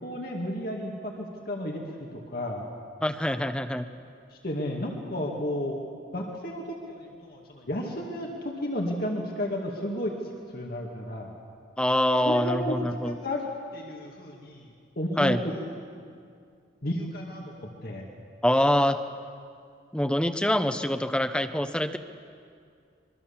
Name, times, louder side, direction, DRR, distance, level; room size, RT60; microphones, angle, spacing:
voice 1, 0.0-2.7 4.3-5.8 6.1-10.2 10.5-11.3 12.2-14.7 15.0-15.6 16.8-18.1, left 1 dB, 50° left, 0 dB, 2.3 m, -33 dB
voice 2, 3.0-3.9 11.8-13.2 15.2-15.4 18.4-19.0 19.9-22.0, left 1 dB, 5° left, 8 dB, 0.7 m, -25 dB
25.0 x 23.5 x 7.3 m, 2.3 s
head